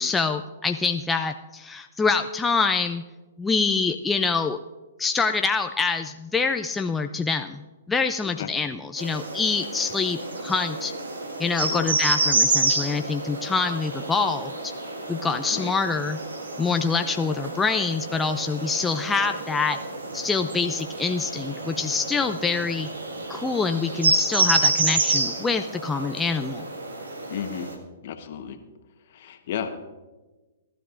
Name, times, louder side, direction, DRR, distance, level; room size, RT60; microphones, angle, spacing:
voice 1, 0.0-3.0 3.4-4.6 5.0-7.6 7.9-10.9 11.4-14.7 15.1-16.2 16.6-19.8 20.1-22.9 23.3-26.6, left 4 dB, 10° left, 6 dB, 0.4 m, -25 dB
sound 1, 9.0-27.7, right 3 dB, 90° right, 1.8 m, -28 dB
voice 2, 27.3-27.7 28.0-28.6 29.1-29.7, left 8 dB, 55° left, 7 dB, 1.1 m, -33 dB
18.0 x 12.5 x 2.5 m, 1.2 s
hypercardioid pair, 135°, 0 cm